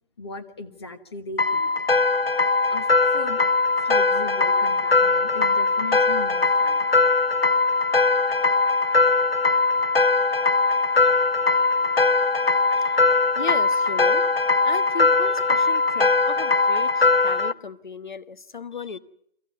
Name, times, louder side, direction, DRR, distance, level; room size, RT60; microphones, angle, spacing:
voice 1, 0.2-1.7 2.7-2.9 3.1-3.4 3.8-6.9, left 3 dB, 25° left, 1.3 m, -37 dB
sound 1, 1.4-17.5, left 3 dB, 80° left, 1.0 m, -20 dB
voice 2, 11.4-11.9 12.8-13.0 13.3-14.3 14.6-19.0, left 4 dB, 55° left, 1.3 m, -36 dB
25.0 x 15.5 x 9.4 m
figure-of-eight pair, 150°, 29 cm